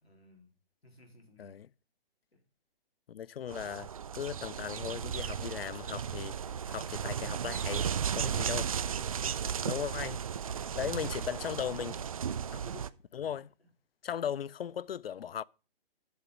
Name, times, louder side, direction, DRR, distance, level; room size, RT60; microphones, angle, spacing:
voice 1, 0.0-0.5 0.8-1.5 2.3-2.4 8.1-9.7 10.6-11.3 11.6-12.0 12.2-12.9, left 1 dB, 90° left, 3.9 m, -54 dB
voice 2, 3.1-8.7 9.7-10.2 10.8-11.9 12.5-12.6 13.1-13.5 14.0-15.4, left 9 dB, 75° left, 0.5 m, -37 dB
sound 1, 3.5-12.9, right 8 dB, 35° right, 0.4 m, -35 dB
8.7 x 7.2 x 5.2 m
figure-of-eight pair, 140°, 30 cm